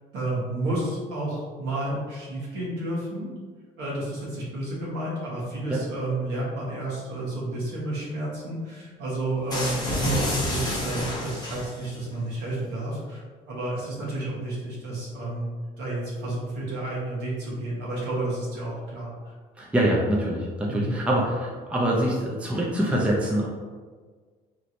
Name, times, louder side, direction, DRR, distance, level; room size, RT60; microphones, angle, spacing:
voice 1, 0.1-3.3 3.8-13.2 13.5-15.5 15.8-19.3 20.7-20.9, right 2 dB, 85° right, -6 dB, 1.1 m, -31 dB
sound 1, 9.5-12.0, left 1 dB, 25° left, 0.9 m, -28 dB
voice 2, 19.6-23.5, right 1 dB, 5° right, -3 dB, 0.5 m, -24 dB
3.1 x 2.9 x 2.6 m, 1.5 s
cardioid pair, 110°, 17 cm